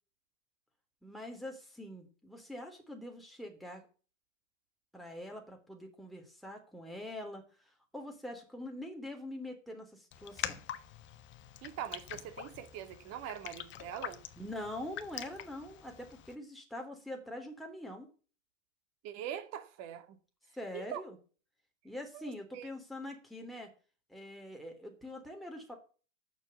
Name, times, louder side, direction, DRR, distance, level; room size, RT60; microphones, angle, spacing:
voice 1, 1.0-3.8 4.9-10.6 14.4-18.1 20.5-21.2 21.8-23.7 24.1-25.7, left 1 dB, ahead, 3.5 m, -44 dB
Raindrop, 10.1-16.3, left 11 dB, 30° left, 1.3 m, -45 dB
voice 2, 11.6-14.2 19.0-20.2 20.7-21.0 22.1-22.7, right 10 dB, 40° right, 2.2 m, -43 dB
9.5 x 7.0 x 8.4 m
hypercardioid pair, 120°, 38 cm